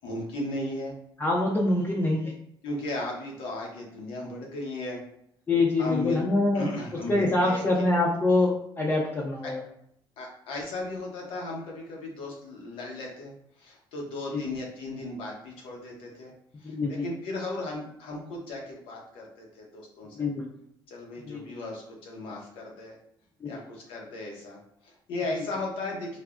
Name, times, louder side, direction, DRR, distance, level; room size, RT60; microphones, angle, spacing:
voice 1, 0.0-0.9 2.6-5.0 5.8-6.2 6.5-7.6 9.4-9.5 10.2-13.3 13.6-16.3 16.6-20.3 20.9-22.9 23.5-26.2, left 2 dB, 90° left, -1 dB, 0.8 m, -36 dB
voice 2, 1.2-2.3 5.5-6.6 7.1-9.6 14.3-14.4 16.6-17.0 20.1-20.4 21.3-21.5 23.4-23.5, left 2 dB, 25° left, -3 dB, 0.4 m, -25 dB
3.2 x 2.0 x 2.4 m, 0.71 s
cardioid pair, 130°, 9 cm